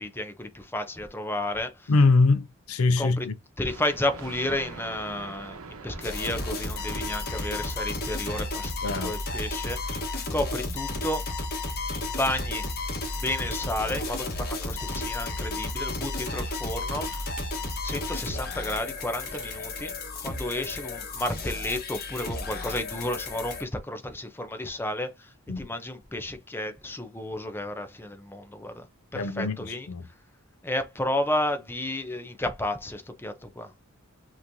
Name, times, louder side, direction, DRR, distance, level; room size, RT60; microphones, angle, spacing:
voice 1, 0.0-1.9 3.0-3.3 3.6-11.3 12.2-12.7 13.2-17.1 17.8-19.9 20.2-28.9 29.1-29.9 30.6-33.7, left 1 dB, 10° left, 0.7 m, -32 dB
voice 2, 1.9-3.3 8.8-9.2 25.5-25.7 29.1-30.1, left 3 dB, 80° left, 0.6 m, -23 dB
Thunder, 3.6-9.0, right 3 dB, 80° right, 0.9 m, -45 dB
sound 1, 6.0-23.6, left 2 dB, 45° left, 1.3 m, -33 dB
sound 2, 13.0-13.4 14.7-15.2 16.8-17.5 18.9-19.8, right 4 dB, 40° right, 1.5 m, -50 dB
5.7 x 3.1 x 2.7 m
head